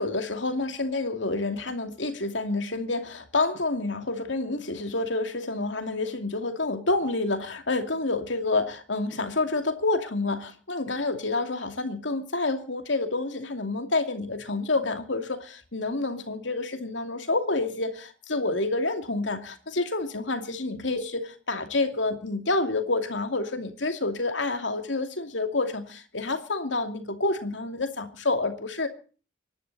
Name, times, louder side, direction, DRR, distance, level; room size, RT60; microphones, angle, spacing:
voice 1, 0.0-28.9, left 2 dB, 75° left, 7 dB, 2.5 m, -28 dB
25.5 x 11.5 x 4.1 m, 0.39 s
head